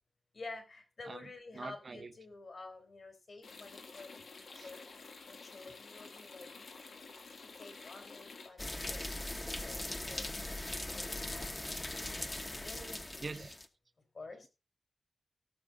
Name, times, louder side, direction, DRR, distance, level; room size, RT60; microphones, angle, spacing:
voice 1, 0.3-4.2 4.6-4.8 5.3-6.7 7.6-10.3 10.9-11.5 12.6-13.5 14.1-14.4, left 3 dB, 55° left, 3.4 m, -50 dB
voice 2, 1.1-2.1 4.5-4.7 12.6-13.6, right 3 dB, 45° right, 0.8 m, -46 dB
sound 1, 3.4-8.5, left 4 dB, 90° left, 1.8 m, -51 dB
sound 2, 8.6-13.7, left 2 dB, 25° left, 1.0 m, -40 dB
17.0 x 6.7 x 3.8 m
wide cardioid pair, 125°, 0 cm